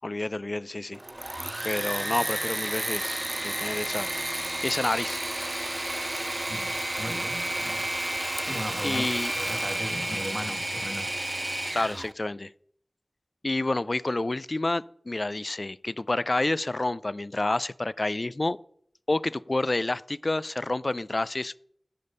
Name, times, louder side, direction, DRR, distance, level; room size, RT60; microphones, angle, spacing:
voice 1, 0.0-1.0 1.6-5.2 8.8-9.3 11.7-12.5 13.4-18.6 19.1-21.6, left 2 dB, 50° left, 0.4 m, -29 dB
Engine / Mechanisms, 0.9-12.1, right 1 dB, 30° right, 0.3 m, -31 dB
voice 2, 6.5-7.8 8.4-11.2, equal, ahead, 1.5 m, -37 dB
15.0 x 5.2 x 5.5 m
wide cardioid pair, 60°, 0 cm